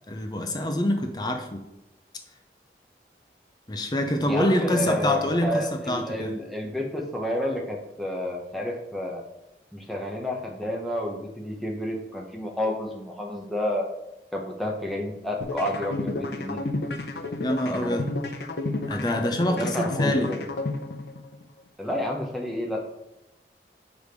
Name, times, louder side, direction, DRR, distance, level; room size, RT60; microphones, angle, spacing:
voice 1, 0.1-1.6 3.7-6.3 17.4-18.1 18.9-20.3, left 1 dB, 25° left, 5 dB, 0.6 m, -26 dB
voice 2, 4.2-9.2 9.7-13.9 14.3-16.6 17.7-18.1 19.5-20.4 21.8-22.8, left 1 dB, ahead, -1 dB, 1.0 m, -30 dB
sound 1, 15.4-21.4, left 2 dB, 70° left, 0.7 m, -31 dB
5.0 x 4.9 x 5.2 m, 0.92 s
head